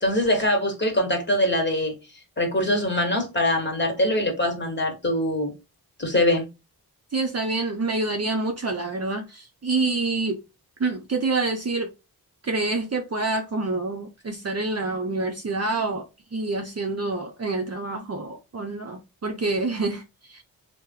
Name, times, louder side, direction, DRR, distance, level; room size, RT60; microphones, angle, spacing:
voice 1, 0.0-1.9 2.4-5.5 6.0-6.5, left 1 dB, 30° left, 1.4 m, -23 dB
voice 2, 7.1-10.4 10.8-11.9 12.4-16.0 16.3-20.4, right 3 dB, 40° right, 0.7 m, -27 dB
3.0 x 2.2 x 3.7 m
cardioid pair, 60°, 39 cm